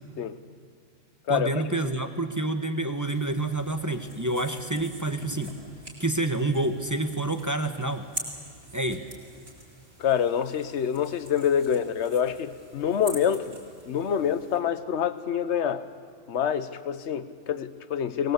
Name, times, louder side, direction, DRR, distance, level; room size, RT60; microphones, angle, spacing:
voice 1, 1.3-5.6 6.0-8.0 8.7-9.1, right 2 dB, 15° right, 6 dB, 1.0 m, -28 dB
sound 1, 3.0-14.6, right 1 dB, 50° right, 5.5 m, -45 dB
voice 2, 10.0-13.6 13.9-15.8 16.3-18.3, left 8 dB, 65° left, 13 dB, 1.2 m, -26 dB
23.0 x 20.0 x 8.1 m, 2.1 s
omnidirectional pair, 1.3 m